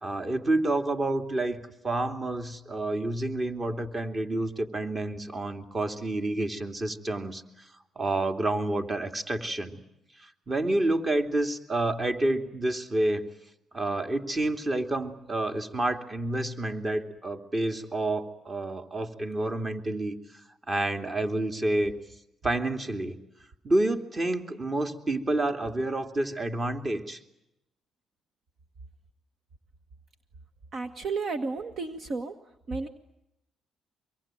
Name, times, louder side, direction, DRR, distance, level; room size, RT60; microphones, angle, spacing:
voice 1, 0.0-7.4 8.0-9.8 10.5-13.3 13.7-20.2 20.7-21.9 22.4-23.2 23.6-27.2, right 2 dB, 30° right, 6 dB, 2.9 m, -29 dB
voice 2, 30.7-32.3 32.7-32.9, right 4 dB, 60° right, 8 dB, 1.7 m, -32 dB
25.0 x 23.0 x 9.2 m, 0.86 s
cardioid pair, 75°, 0 cm